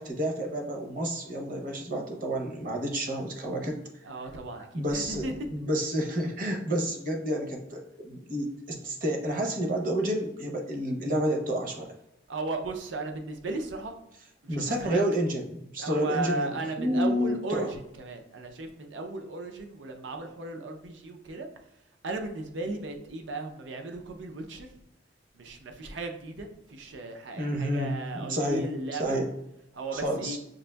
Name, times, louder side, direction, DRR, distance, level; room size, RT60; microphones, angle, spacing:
voice 1, 0.0-3.8 4.7-11.9 14.5-17.7 27.4-28.7 29.0-29.3 29.9-30.4, equal, 50° right, 2 dB, 0.7 m, -30 dB
voice 2, 4.0-5.3 12.3-14.0 14.4-15.0 15.8-21.5 22.0-24.7 25.3-29.2 29.7-30.4, right 2 dB, 85° right, 4 dB, 0.5 m, -36 dB
6.2 x 2.5 x 2.2 m, 0.82 s
head